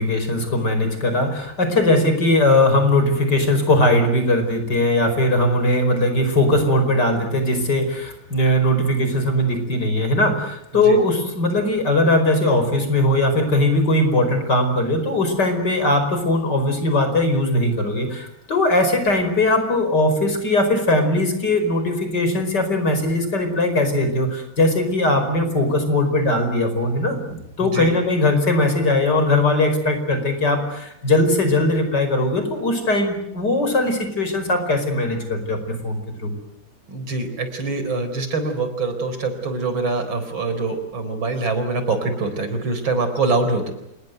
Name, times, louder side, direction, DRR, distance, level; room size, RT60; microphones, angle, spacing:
voice 1, 0.0-36.3, left 1 dB, 55° left, 7 dB, 5.5 m, -20 dB
voice 2, 27.6-27.9 36.9-43.7, right 3 dB, 75° right, 8 dB, 5.0 m, -24 dB
27.5 x 20.5 x 8.0 m, 0.82 s
omnidirectional pair, 2.2 m